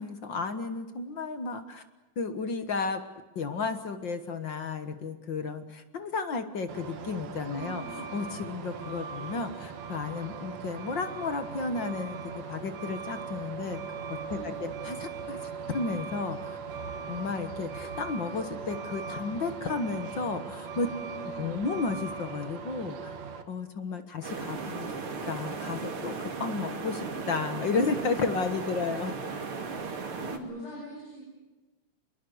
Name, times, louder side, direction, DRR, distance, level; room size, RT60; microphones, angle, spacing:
voice 1, 0.0-1.8 2.2-3.0 3.4-13.8 14.1-16.6 17.1-20.9 21.4-23.2 23.5-24.9 25.3-29.1, left 4 dB, 45° left, 9 dB, 1.7 m, -33 dB
Truck, 6.7-23.4, right 6 dB, 60° right, 3.0 m, -39 dB
voice 2, 7.4-8.0 14.2-14.7 20.9-21.6 29.8-31.2, equal, 75° left, -3 dB, 8.9 m, -43 dB
sound 1, 24.2-30.4, right 4 dB, 45° right, 3.1 m, -36 dB
26.5 x 21.5 x 8.0 m, 1.2 s
omnidirectional pair, 3.7 m